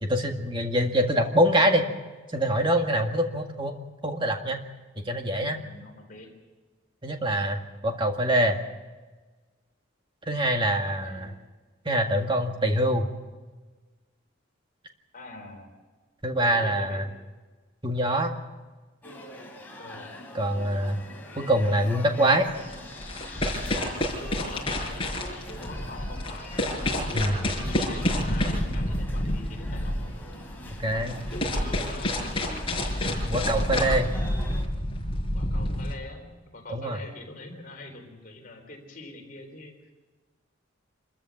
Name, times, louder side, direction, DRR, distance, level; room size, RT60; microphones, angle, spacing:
voice 1, 0.0-1.9 2.3-3.7 4.0-4.6 5.1-5.6 7.0-8.6 10.3-11.3 11.9-13.1 16.2-17.0 17.8-18.3 20.3-21.0 21.4-22.5 27.1-27.5 30.8-31.2 33.3-34.1 36.7-37.0, right 1 dB, 25° right, 3 dB, 1.9 m, -24 dB
voice 2, 5.5-6.3 10.3-11.4 15.1-15.7 16.5-17.0 19.8-20.1 24.2-26.7 27.7-30.0 30.9-32.6 35.3-39.9, left 2 dB, 40° left, 1 dB, 4.1 m, -44 dB
sound 1, 19.0-34.7, left 1 dB, 10° left, 3.1 m, -43 dB
sound 2, 22.5-35.9, left 1 dB, 25° left, 5.3 m, -29 dB
27.0 x 14.0 x 7.5 m, 1.3 s
head